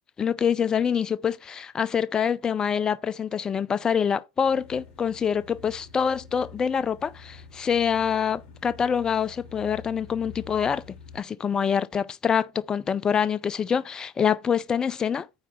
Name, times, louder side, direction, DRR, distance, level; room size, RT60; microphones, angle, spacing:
voice 1, 0.2-10.8 11.1-15.3, left 7 dB, 20° left, 0.6 m, -25 dB
sound 1, 4.4-11.2, left 5 dB, 40° left, 3.5 m, -47 dB
9.6 x 3.4 x 6.3 m
hypercardioid pair, 105°, 3 cm